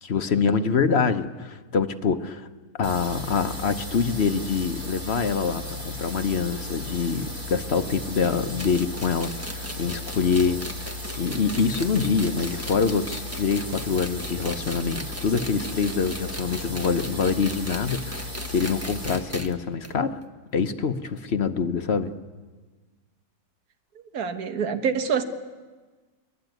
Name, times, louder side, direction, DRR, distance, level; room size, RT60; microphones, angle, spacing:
voice 1, 0.0-2.5 2.8-10.6 10.9-20.2 20.5-22.1, left 5 dB, 45° left, 9 dB, 1.1 m, -25 dB
sound 1, 2.8-19.1, left 2 dB, 30° right, 6.5 m, -36 dB
sound 2, 8.2-19.5 19.8-19.9 20.2-20.3 21.2-21.3, equal, 10° right, 1.1 m, -38 dB
voice 2, 24.1-25.2, right 6 dB, 65° right, 8 dB, 1.7 m, -26 dB
23.5 x 21.5 x 9.3 m, 1.4 s
omnidirectional pair, 1.7 m